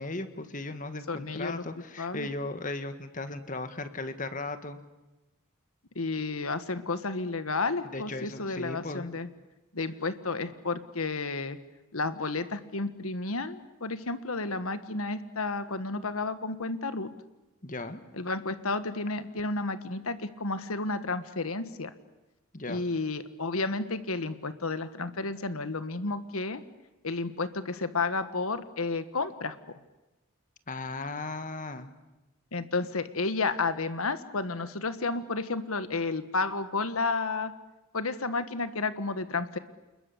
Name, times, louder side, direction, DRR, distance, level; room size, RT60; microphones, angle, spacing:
voice 1, 0.0-4.8 7.9-9.1 17.6-18.0 22.5-22.8 30.7-31.9, left 2 dB, 40° left, 10 dB, 1.7 m, -36 dB
voice 2, 1.1-1.6 2.0-2.3 5.9-9.3 9.7-11.6 11.9-17.1 18.2-21.9 22.7-26.6 27.0-29.8 32.5-37.5 37.9-39.6, left 3 dB, 85° left, 11 dB, 1.6 m, -31 dB
29.0 x 21.0 x 8.4 m, 1.1 s
head